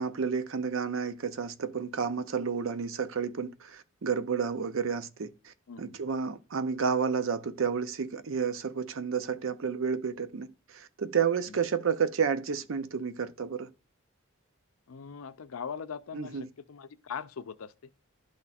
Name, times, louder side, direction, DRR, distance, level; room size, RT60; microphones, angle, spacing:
voice 1, 0.0-13.7 16.1-16.5, right 6 dB, 70° right, 0.5 m, -31 dB
voice 2, 5.7-6.0 11.5-11.6 14.9-17.7, left 6 dB, 85° left, 0.5 m, -41 dB
12.0 x 4.2 x 2.4 m
head